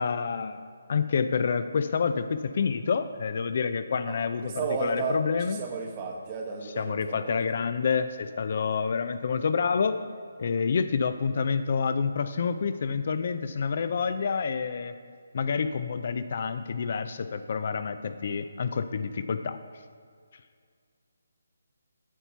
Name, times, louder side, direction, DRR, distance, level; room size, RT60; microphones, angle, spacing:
voice 1, 0.0-5.6 6.6-10.0 10.4-14.9 15.3-19.6, left 5 dB, 50° left, 11 dB, 0.4 m, -28 dB
voice 2, 4.0-7.4, right 4 dB, 25° right, 2 dB, 0.9 m, -33 dB
8.8 x 4.5 x 6.8 m, 2.1 s
hypercardioid pair, 165°, 0 cm